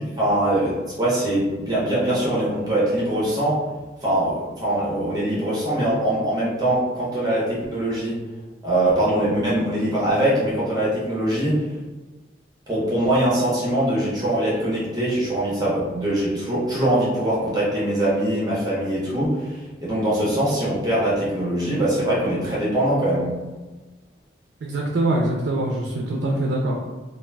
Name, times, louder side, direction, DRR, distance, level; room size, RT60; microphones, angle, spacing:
voice 1, 0.2-3.6 4.0-8.2 8.6-11.6 12.7-23.3, right 1 dB, 20° right, -7 dB, 0.7 m, -22 dB
voice 2, 24.6-26.8, right 1 dB, 70° right, -1 dB, 0.4 m, -23 dB
2.3 x 2.2 x 3.2 m, 1.2 s
head